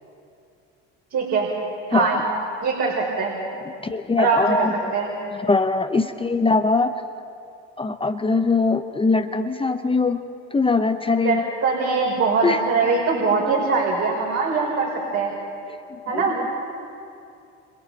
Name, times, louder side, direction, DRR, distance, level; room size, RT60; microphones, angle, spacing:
voice 1, 1.1-1.5 1.9-2.2 2.6-3.4 4.2-4.7 4.9-5.1 11.2-15.3 16.1-16.4, right 4 dB, 50° right, -4 dB, 5.4 m, -22 dB
voice 2, 3.8-4.7 5.3-6.9 7.8-10.2 10.5-11.5 12.4-12.6 13.5-13.6 16.1-16.5, left 3 dB, 15° left, 6 dB, 1.0 m, -21 dB
28.5 x 27.5 x 4.3 m, 2.6 s
supercardioid pair, 80°, 32 cm